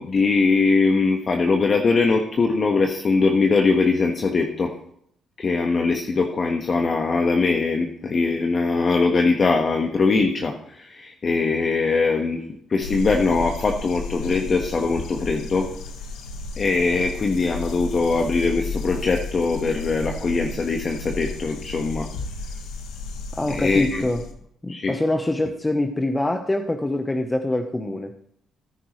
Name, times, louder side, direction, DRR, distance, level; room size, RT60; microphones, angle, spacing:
voice 1, 0.0-4.7 5.4-12.4 12.7-15.7 16.6-22.1 23.5-24.0 24.7-25.0, left 4 dB, 40° left, 2 dB, 1.5 m, -21 dB
sound 1, 12.8-24.3, left 3 dB, 90° left, 1.6 m, -33 dB
voice 2, 23.4-24.2 24.6-28.1, left 1 dB, 15° left, 4 dB, 1.1 m, -24 dB
15.0 x 9.8 x 3.3 m, 0.68 s
cardioid pair, 90°, 0 cm